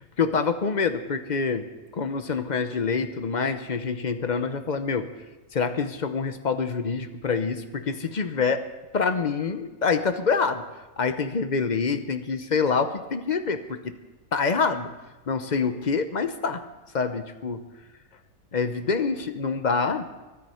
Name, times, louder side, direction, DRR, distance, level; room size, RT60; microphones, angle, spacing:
voice 1, 0.0-1.7 1.9-5.1 5.5-8.6 8.9-10.6 11.0-13.9 14.3-14.9 15.3-16.6 16.9-17.6 18.5-20.1, left 5 dB, 40° left, 9 dB, 0.7 m, -26 dB
23.0 x 9.7 x 4.4 m, 1.1 s
omnidirectional pair, 1.6 m